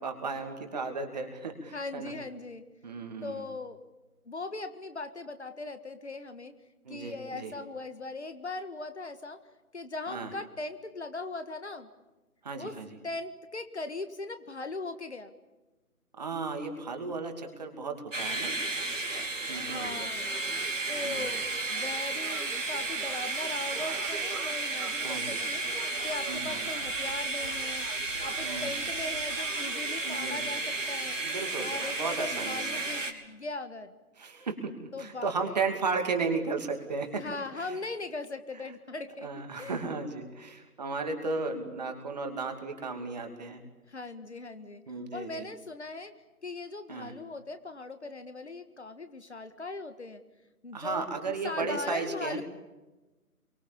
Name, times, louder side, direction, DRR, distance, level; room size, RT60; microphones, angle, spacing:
voice 1, 0.0-2.2 2.8-3.4 6.8-7.5 10.1-10.3 12.4-12.9 16.2-18.5 19.5-20.0 21.0-21.3 25.0-25.4 26.3-26.7 28.4-28.7 30.0-30.5 31.2-32.7 34.2-37.2 37.5-37.8 39.2-43.6 44.9-45.5 46.9-47.1 50.7-52.4, right 4 dB, 25° right, 5 dB, 2.7 m, -35 dB
voice 2, 1.7-2.6 3.2-3.8 4.3-6.6 6.9-9.4 9.7-11.9 12.6-12.8 13.0-15.3 19.5-20.3 20.9-31.2 31.6-33.9 34.9-35.5 37.2-39.3 39.6-39.9 43.9-44.8 45.1-46.1 46.4-50.2 50.6-51.1 51.4-52.4, left 3 dB, 45° left, 10 dB, 1.8 m, -39 dB
sound 1, 18.1-33.1, right 3 dB, 55° right, 3.4 m, -33 dB
28.0 x 24.0 x 7.1 m, 1.1 s
figure-of-eight pair, 155°, 45 cm